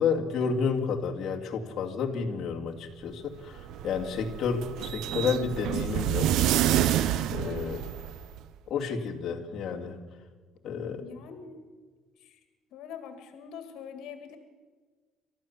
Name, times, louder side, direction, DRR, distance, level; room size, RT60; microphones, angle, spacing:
voice 1, 0.0-6.3 7.3-7.8 8.7-10.0 10.6-11.0, left 5 dB, 45° left, 0 dB, 2.4 m, -30 dB
sound 1, 3.4-8.4, right 12 dB, 70° right, 0.7 m, -28 dB
voice 2, 7.4-7.8 11.0-11.6 12.2-12.4 12.7-14.4, left 7 dB, 75° left, 8 dB, 2.1 m, -44 dB
29.5 x 13.0 x 7.2 m, 1.4 s
cardioid pair, 150°, 0 cm